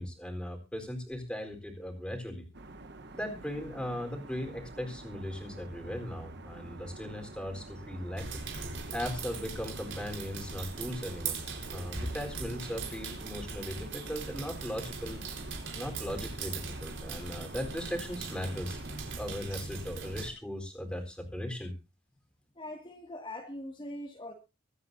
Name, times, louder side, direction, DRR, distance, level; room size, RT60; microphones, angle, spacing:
voice 1, 0.0-2.4 3.1-8.4 8.9-11.4 11.7-15.2 15.7-21.7, equal, 5° left, 4 dB, 4.0 m, -38 dB
sound 1, 2.5-19.2, right 2 dB, 60° right, 1.2 m, -48 dB
sound 2, 8.2-20.3, right 4 dB, 80° right, 4.5 m, -40 dB
voice 2, 22.6-24.3, left 1 dB, 25° left, 0 dB, 2.2 m, -42 dB
24.5 x 9.5 x 2.7 m, 0.29 s
head